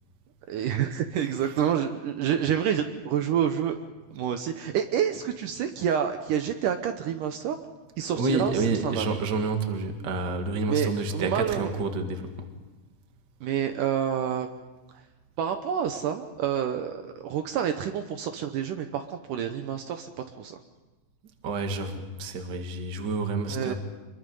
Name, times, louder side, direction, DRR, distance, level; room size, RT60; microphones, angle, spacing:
voice 1, 0.5-3.8 4.1-7.6 8.0-9.1 10.7-11.7 13.4-14.5 15.4-20.1 20.4-20.6 23.5-23.7, right 9 dB, 70° right, 7 dB, 2.3 m, -28 dB
voice 2, 8.1-12.5 21.4-23.7, right 3 dB, 40° right, 5 dB, 1.8 m, -29 dB
26.0 x 22.5 x 5.4 m, 1.2 s
omnidirectional pair, 4.2 m